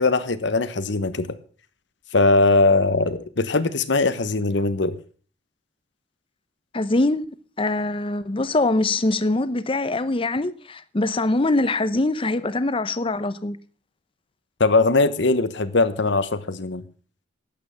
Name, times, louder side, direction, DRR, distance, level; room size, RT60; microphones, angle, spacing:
voice 1, 0.0-1.4 2.1-4.9 14.6-16.8, left 3 dB, 65° left, 1.1 m, -20 dB
voice 2, 6.7-7.3 7.6-13.6, left 2 dB, 30° left, 0.8 m, -23 dB
12.0 x 9.0 x 7.1 m
head